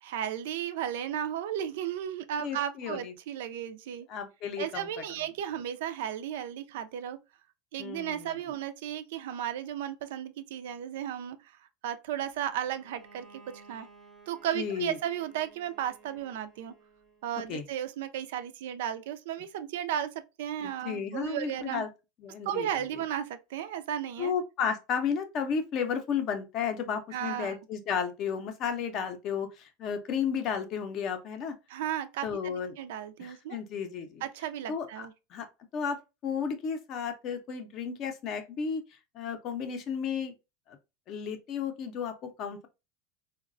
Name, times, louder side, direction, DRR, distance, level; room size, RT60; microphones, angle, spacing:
voice 1, 0.0-4.1 4.6-7.2 7.7-11.4 11.8-13.9 14.3-16.7 17.2-21.9 22.5-24.3 27.1-27.6 31.7-33.6 34.2-35.1, right 10 dB, 75° right, 0.4 m, -34 dB
voice 2, 2.4-3.1 4.1-4.9 7.8-8.4 14.5-15.0 17.5-17.6 20.6-21.9 22.2-22.7 24.2-31.6 32.2-32.8 33.2-34.2 34.7-35.1 35.3-35.5 35.7-38.8 39.1-40.3 40.7-40.8 41.1-42.7, left 7 dB, 35° left, 0.5 m, -33 dB
Bowed string instrument, 12.7-17.4, right 4 dB, 10° right, 0.6 m, -56 dB
3.9 x 2.1 x 2.4 m
supercardioid pair, 165°, 0 cm